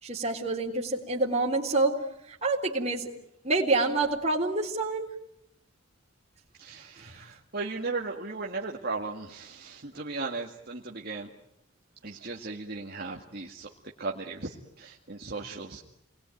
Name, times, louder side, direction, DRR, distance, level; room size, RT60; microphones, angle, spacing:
voice 1, 0.0-1.9 2.3-3.1 3.4-5.1 7.0-7.1, right 3 dB, 30° right, -1 dB, 3.7 m, -27 dB
voice 2, 6.6-11.3 12.0-13.7 14.0-15.9, right 3 dB, 45° right, 0 dB, 2.1 m, -36 dB
29.0 x 21.5 x 9.2 m, 0.82 s
head